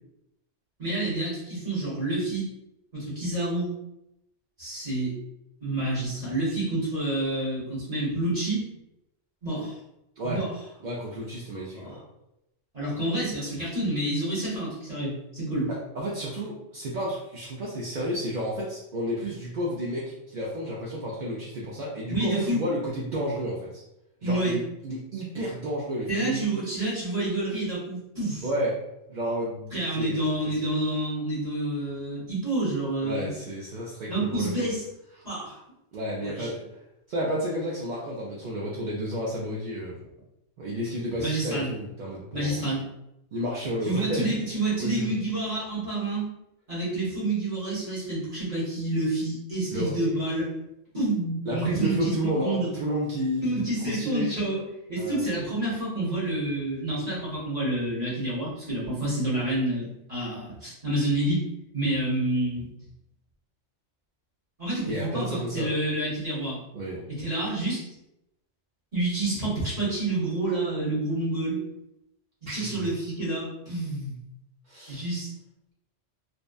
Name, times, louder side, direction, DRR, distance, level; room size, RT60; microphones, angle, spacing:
voice 1, 0.8-2.5 2.9-3.7 4.6-5.2 5.6-8.7 9.4-9.8 10.2-10.5 11.7-11.9 12.7-15.7 22.1-22.6 24.2-24.6 26.1-28.5 29.7-33.3 34.1-34.8 35.2-35.6 36.2-36.5 41.2-41.7 42.3-42.8 43.8-46.3 46.7-50.5 50.9-52.7 53.4-54.6 54.9-61.4 61.7-62.7 64.6-66.6 67.1-67.8 68.9-71.6 72.5-74.2 74.9-75.3, right 2 dB, 35° right, -8 dB, 0.9 m, -28 dB
voice 2, 10.8-12.0 15.7-23.8 24.2-26.4 28.4-28.8 29.1-30.2 30.5-30.6 33.0-34.7 35.9-36.6 37.1-40.0 40.6-42.6 43.3-44.2 44.8-45.1 49.7-50.0 51.5-53.6 53.9-54.3 55.0-55.2 64.9-65.7 66.7-67.0 72.5-72.9 74.7-75.0, equal, 60° right, -5 dB, 0.5 m, -31 dB
2.7 x 2.1 x 2.3 m, 0.87 s
omnidirectional pair, 1.2 m